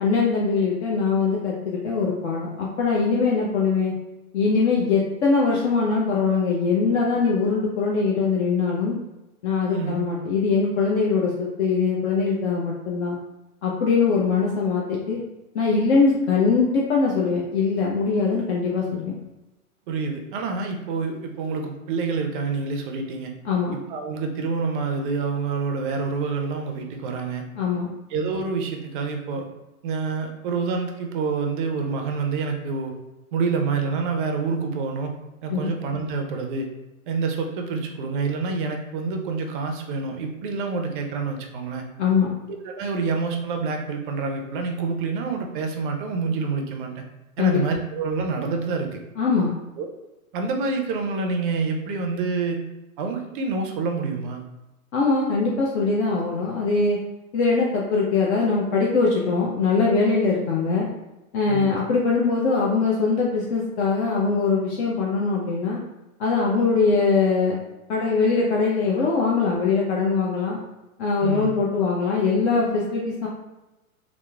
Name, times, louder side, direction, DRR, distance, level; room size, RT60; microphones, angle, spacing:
voice 1, 0.0-3.9 4.3-9.0 9.4-13.2 13.6-15.2 15.5-19.1 23.4-23.7 27.6-27.9 35.5-35.7 42.0-42.3 47.4-47.6 49.2-49.5 54.9-57.0 57.3-60.9 61.3-65.8 66.2-67.6 67.9-70.6 71.0-73.3, left 4 dB, 50° left, -4 dB, 0.5 m, -22 dB
voice 2, 9.7-10.0 19.9-23.3 23.7-27.4 28.1-29.5 29.8-32.9 33.3-35.1 35.4-36.7 37.1-41.8 42.5-47.0 47.4-49.0 49.8-49.9 50.3-52.6 53.0-54.4 61.5-61.8 71.2-71.5, right 4 dB, 40° right, 3 dB, 0.4 m, -27 dB
2.9 x 2.0 x 2.3 m, 1.0 s
hypercardioid pair, 115°, 43 cm